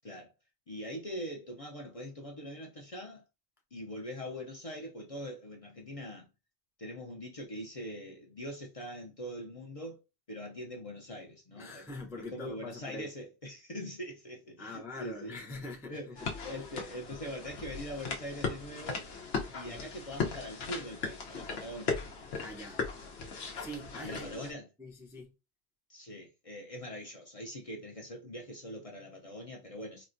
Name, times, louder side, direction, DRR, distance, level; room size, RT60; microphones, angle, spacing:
voice 1, 0.7-3.2 3.7-6.3 6.8-10.0 10.3-11.9 12.2-15.4 15.9-16.1 16.4-19.1 19.5-22.0 24.0-24.7 25.9-30.1, equal, 40° left, 0.6 m, -42 dB
voice 2, 11.6-13.1 14.6-16.6 19.6-19.9 22.4-22.8 23.6-24.5 24.8-25.3, left 1 dB, 5° right, 0.4 m, -44 dB
sound 1, 16.1-24.5, left 4 dB, 85° left, 1.0 m, -38 dB
4.1 x 2.1 x 2.5 m
omnidirectional pair, 1.1 m